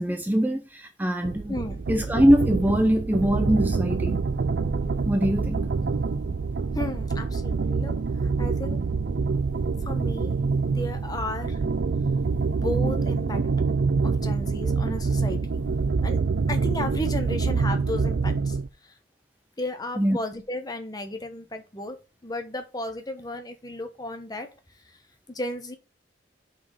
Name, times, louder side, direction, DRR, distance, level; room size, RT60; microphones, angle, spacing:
voice 1, 0.0-1.6 1.9-4.2 5.1-5.6 20.0-20.2, equal, 10° right, 0.5 m, -22 dB
sound 1, 1.2-18.7, right 4 dB, 70° right, 0.5 m, -26 dB
voice 2, 1.5-1.8 6.7-8.8 9.8-10.4 10.7-11.6 12.5-13.4 14.0-15.6 16.0-16.2 16.5-18.6 18.8-18.9 19.6-24.5 24.8-25.0 25.3-25.8, left 1 dB, 20° left, 1.1 m, -34 dB
5.7 x 4.3 x 5.5 m
head